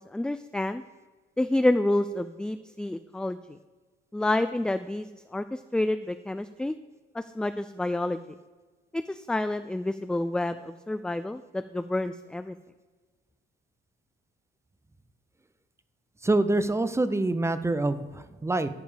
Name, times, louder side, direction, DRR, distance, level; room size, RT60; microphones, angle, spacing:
voice 1, 0.1-0.8 1.4-3.6 4.1-6.7 7.1-8.2 8.9-12.5, left 1 dB, 5° left, 11 dB, 0.3 m, -29 dB
voice 2, 16.2-18.7, right 2 dB, 15° right, 12 dB, 0.7 m, -26 dB
13.5 x 5.2 x 5.0 m, 1.3 s
cardioid pair, 90°, 20 cm